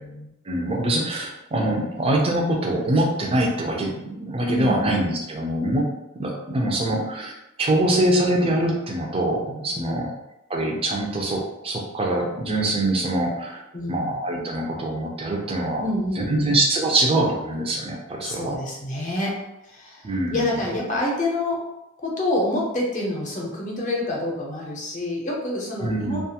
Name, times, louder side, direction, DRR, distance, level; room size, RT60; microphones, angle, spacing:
voice 1, 0.5-5.9 6.2-7.3 7.6-10.1 10.5-13.6 13.9-15.8 16.2-18.6 20.0-20.4 25.8-26.2, right 1 dB, 25° right, 0 dB, 0.5 m, -24 dB
voice 2, 4.5-4.9 5.6-5.8 9.7-10.1 13.7-14.2 15.8-16.5 18.2-19.3 19.6-21.6 22.0-26.2, left 1 dB, 35° left, -3 dB, 0.7 m, -27 dB
2.4 x 2.3 x 2.8 m, 0.90 s
head